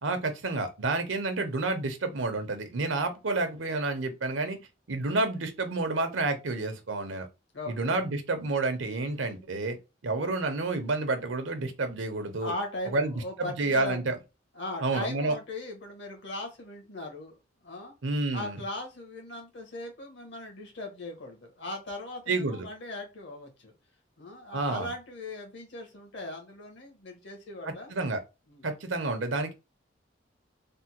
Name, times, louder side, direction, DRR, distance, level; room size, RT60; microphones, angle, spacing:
voice 1, 0.0-4.6 4.9-7.3 7.7-9.8 10.0-12.5 12.9-14.1 14.8-15.3 18.0-18.6 22.3-22.7 24.5-24.9 27.9-28.2 28.6-29.5, right 3 dB, 85° right, 0.8 m, -29 dB
voice 2, 7.5-8.0 12.4-14.0 14.5-17.4 17.6-17.9 18.3-23.7 24.2-27.9 28.5-28.7, left 2 dB, 70° left, 1.3 m, -39 dB
3.5 x 2.1 x 2.8 m
head